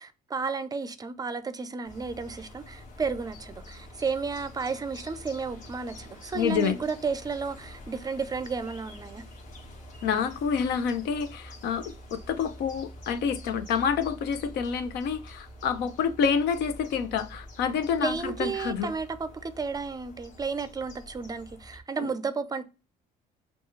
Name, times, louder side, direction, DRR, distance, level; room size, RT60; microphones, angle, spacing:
voice 1, 0.0-9.2 18.0-22.6, right 5 dB, 20° right, 0.4 m, -32 dB
sound 1, 1.8-21.8, equal, 50° left, 1.4 m, -46 dB
voice 2, 6.3-6.8 10.0-18.9 22.0-22.1, left 7 dB, 75° left, 0.7 m, -28 dB
6.2 x 2.4 x 3.1 m
cardioid pair, 110°, 17 cm